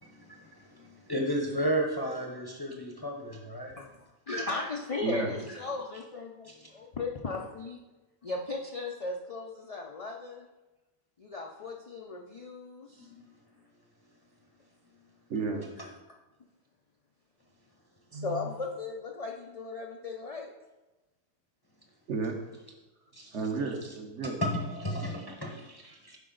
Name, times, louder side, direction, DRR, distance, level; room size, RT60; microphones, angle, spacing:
voice 1, 0.0-3.7 6.4-6.7 13.0-13.1 15.8-15.9 23.1-23.3 24.4-26.2, equal, 25° left, 1 dB, 0.6 m, -33 dB
voice 2, 4.3-7.8 8.2-10.5 11.2-13.1 15.8-15.9 18.1-20.5, left 3 dB, 70° left, -1 dB, 0.3 m, -36 dB
voice 3, 5.0-5.3 15.3-15.7 18.1-18.5 22.1-22.3 23.3-24.4, right 4 dB, 60° right, 3 dB, 1.1 m, -32 dB
8.2 x 5.0 x 3.8 m, 1.1 s
omnidirectional pair, 1.4 m